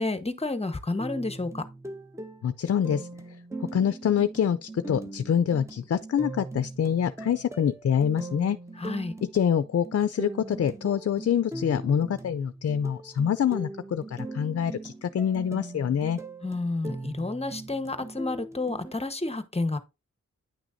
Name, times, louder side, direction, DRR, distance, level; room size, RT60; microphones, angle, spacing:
voice 1, 0.0-1.6 8.8-9.1 16.4-19.8, left 2 dB, 20° left, 1.0 m, -30 dB
sound 1, 1.0-18.9, right 2 dB, 10° right, 1.0 m, -40 dB
voice 2, 2.4-3.1 3.7-8.6 9.2-16.2, left 8 dB, 55° left, 0.5 m, -26 dB
9.9 x 6.1 x 2.6 m
wide cardioid pair, 95°, 29 cm